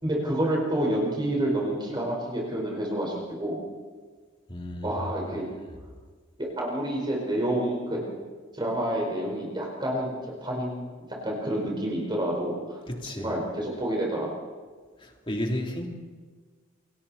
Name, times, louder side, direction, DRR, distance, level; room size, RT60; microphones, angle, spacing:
voice 1, 0.0-3.6 4.8-5.4 6.4-8.0 8.5-10.1 10.4-10.8 11.2-12.8 13.1-14.3, right 1 dB, 25° right, -2 dB, 4.8 m, -28 dB
voice 2, 4.5-5.0 12.9-13.3 15.0-15.9, left 1 dB, 25° left, 1 dB, 3.2 m, -32 dB
29.0 x 25.0 x 4.3 m, 1.5 s
head